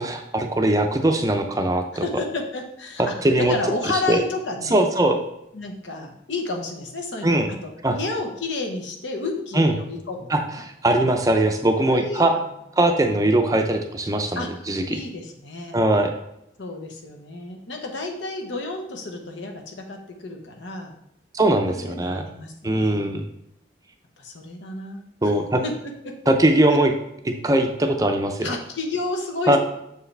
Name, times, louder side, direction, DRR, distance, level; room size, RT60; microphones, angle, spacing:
voice 1, 0.0-2.0 3.0-3.5 4.1-4.2 4.7-5.2 7.2-7.5 7.8-8.0 9.5-9.7 10.3-12.3 12.8-14.4 14.7-15.0 15.7-16.1 21.3-22.2 22.6-23.3 25.2-25.6 26.3-26.9 27.2-28.5 29.5-29.6, right 1 dB, 20° right, 4 dB, 0.5 m, -20 dB
voice 2, 1.9-4.9 5.5-7.4 7.6-7.7 7.9-10.6 11.9-12.3 14.4-14.6 14.9-15.7 16.6-21.0 21.7-23.1 24.2-25.3 25.6-25.7 26.0-26.3 28.4-29.6, left 3 dB, 85° left, 3 dB, 1.0 m, -31 dB
6.7 x 4.7 x 3.3 m, 0.81 s
head